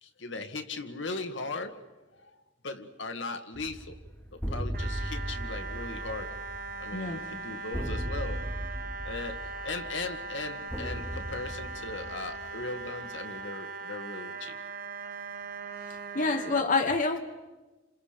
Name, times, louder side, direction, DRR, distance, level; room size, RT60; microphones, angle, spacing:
voice 1, 0.0-1.8 2.1-4.0 4.3-6.3 6.8-8.5 9.0-14.6, left 3 dB, 75° left, 7 dB, 1.7 m, -38 dB
sound 1, 3.5-13.0, equal, 10° left, 2.5 m, -37 dB
sound 2, 4.7-16.6, right 4 dB, 50° right, 1.1 m, -40 dB
voice 2, 6.9-7.2 16.1-17.2, left 3 dB, 45° left, 5 dB, 1.3 m, -27 dB
29.5 x 27.5 x 5.2 m, 1.2 s
head